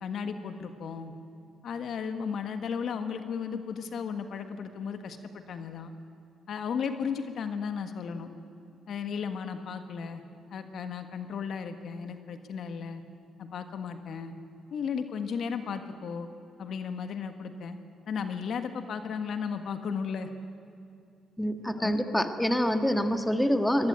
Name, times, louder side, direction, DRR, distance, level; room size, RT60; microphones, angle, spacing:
voice 1, 0.0-1.1 1.6-5.9 6.5-8.3 8.9-10.2 10.5-13.0 13.4-14.3 14.7-16.3 16.6-17.8 18.1-20.3 21.8-22.0, left 6 dB, 65° left, 8 dB, 1.7 m, -35 dB
voice 2, 21.4-23.9, equal, 5° left, 7 dB, 1.6 m, -26 dB
24.0 x 19.0 x 9.0 m, 2.5 s
cardioid pair, 90°, 0 cm